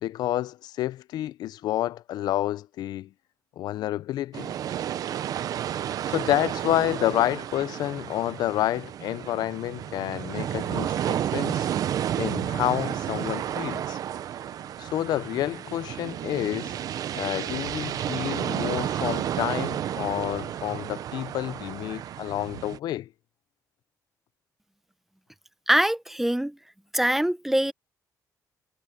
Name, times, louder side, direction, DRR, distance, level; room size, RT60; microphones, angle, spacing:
voice 1, 0.0-3.1 3.6-4.5 6.0-11.7 12.2-14.0 14.8-16.8 17.1-23.1, left 13 dB, 85° left, 0.4 m, -29 dB
sound 1, 4.3-22.8, right 10 dB, 65° right, 0.7 m, -31 dB
voice 2, 25.7-26.6 26.9-27.7, right 1 dB, 5° right, 0.8 m, -23 dB
cardioid pair, 150°, 7 cm